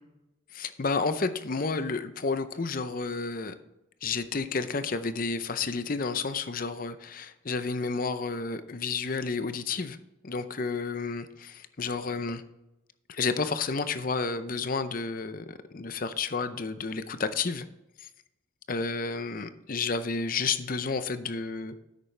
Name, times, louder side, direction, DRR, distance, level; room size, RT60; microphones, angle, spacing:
voice 1, 0.5-3.5 4.0-10.0 10.2-12.4 13.1-17.6 18.0-18.1 18.7-21.7, left 4 dB, 40° left, 11 dB, 0.6 m, -31 dB
10.5 x 8.4 x 3.3 m, 0.91 s
head